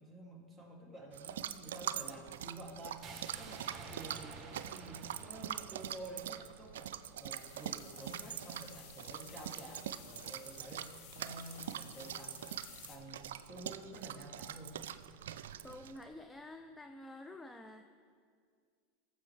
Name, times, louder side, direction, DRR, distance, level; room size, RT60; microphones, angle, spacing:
voice 1, 0.0-3.1 3.4-6.9 7.2-12.6 12.9-14.8, right 1 dB, 5° right, -3 dB, 2.4 m, -50 dB
sound 1, 1.1-16.0, right 10 dB, 80° right, 0.3 m, -44 dB
sound 2, 3.0-7.1, right 4 dB, 35° right, 1.3 m, -51 dB
sound 3, 7.3-13.0, left 9 dB, 60° left, 1.1 m, -56 dB
voice 2, 15.6-17.9, left 1 dB, 10° left, 6 dB, 0.5 m, -49 dB
18.5 x 7.4 x 3.3 m, 2.1 s
hypercardioid pair, 100°, 0 cm